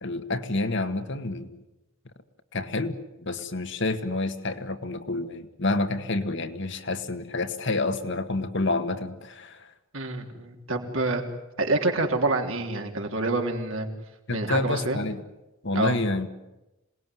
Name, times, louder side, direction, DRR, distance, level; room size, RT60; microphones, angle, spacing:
voice 1, 0.0-1.5 2.5-9.7 14.3-15.2 15.6-16.3, left 2 dB, 55° left, 7 dB, 1.8 m, -28 dB
voice 2, 9.9-11.2 11.6-13.9 14.3-15.0 15.7-16.0, right 2 dB, 65° right, 3 dB, 3.5 m, -27 dB
27.0 x 19.5 x 9.4 m, 0.98 s
head